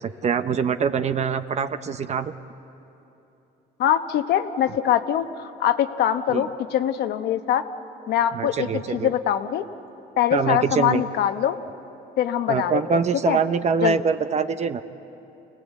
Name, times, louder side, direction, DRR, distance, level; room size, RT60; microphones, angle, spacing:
voice 1, 0.0-2.3 6.3-6.4 8.3-9.1 10.3-11.0 12.5-14.8, right 6 dB, 40° right, 10 dB, 0.8 m, -24 dB
voice 2, 3.8-7.7 8.1-9.6 10.2-11.6 12.2-13.4 13.8-14.0, left 10 dB, 75° left, 9 dB, 1.1 m, -23 dB
28.5 x 18.5 x 8.3 m, 3.0 s
cardioid pair, 110°, 17 cm